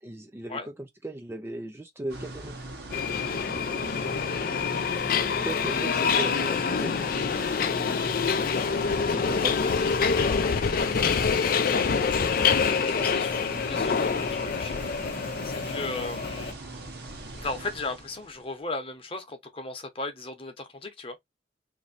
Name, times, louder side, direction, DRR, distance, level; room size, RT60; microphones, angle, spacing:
voice 1, 0.0-2.6 5.4-7.1 8.9-9.5, right 1 dB, 15° right, 0.3 m, -36 dB
sound 1, 2.1-18.5, right 2 dB, 60° right, 1.1 m, -40 dB
Subway metro underground, 2.9-16.5, left 6 dB, 50° left, 0.4 m, -26 dB
voice 2, 9.1-9.6 10.5-11.2 12.8-14.7 15.4-16.5 17.3-21.2, left 3 dB, 30° left, 0.9 m, -37 dB
2.9 x 2.7 x 4.1 m
head